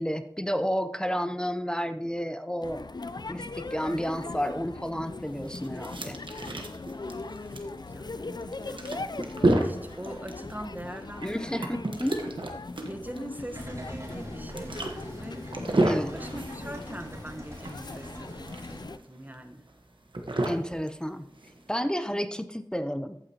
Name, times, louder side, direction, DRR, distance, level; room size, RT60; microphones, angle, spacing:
voice 1, 0.0-2.8 3.3-6.2 11.2-12.2 15.9-16.1 20.4-21.3 21.7-23.2, equal, 10° left, 9 dB, 0.6 m, -31 dB
sound 1, 2.6-19.0, left 3 dB, 60° left, 0.4 m, -40 dB
sound 2, 5.2-21.7, right 2 dB, 85° right, 1.2 m, -32 dB
voice 2, 7.8-8.9 9.6-11.7 12.9-15.4 15.9-19.6, right 1 dB, 20° right, 5 dB, 1.2 m, -42 dB
sound 3, 13.5-18.8, right 1 dB, 40° right, 2.4 m, -43 dB
14.5 x 8.9 x 2.9 m, 0.79 s
wide cardioid pair, 45°, 8 cm